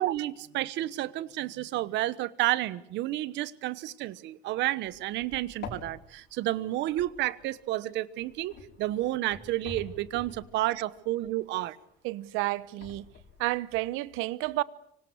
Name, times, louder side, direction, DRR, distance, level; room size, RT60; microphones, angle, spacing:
voice 1, 0.0-11.7, right 15 dB, 60° right, 1.2 m, -31 dB
sound 1, 4.8-7.8 8.2-11.6 12.1-13.6, left 5 dB, 60° left, 5.6 m, -47 dB
voice 2, 12.0-13.0 13.4-14.6, right 19 dB, 90° right, 1.0 m, -30 dB
25.5 x 25.0 x 8.0 m
cardioid pair, 175°, 20 cm